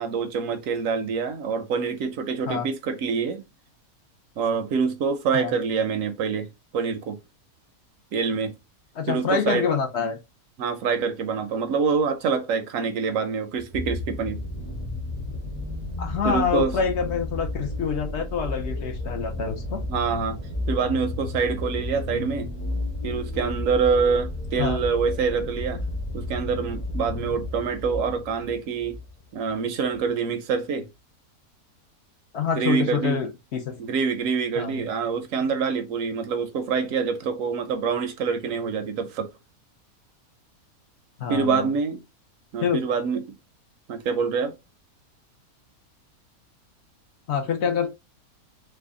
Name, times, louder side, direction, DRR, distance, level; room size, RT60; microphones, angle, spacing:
voice 1, 0.0-3.4 4.4-7.2 8.1-8.5 9.1-9.7 10.6-14.4 16.2-16.8 19.9-20.4 20.7-22.5 23.0-25.8 26.1-29.0 29.3-30.9 32.5-33.2 33.8-39.3 41.3-42.0 42.5-43.3 43.9-44.5, right 5 dB, 70° right, 0.9 m, -26 dB
voice 2, 9.0-10.2 16.0-19.8 24.6-24.8 32.3-33.8 34.6-34.8 41.2-41.7 42.6-42.8 47.3-47.9, left 6 dB, 60° left, 0.8 m, -26 dB
sound 1, 13.5-29.1 29.9-30.0, left 2 dB, 20° left, 0.4 m, -32 dB
3.4 x 2.1 x 3.5 m
omnidirectional pair, 1.6 m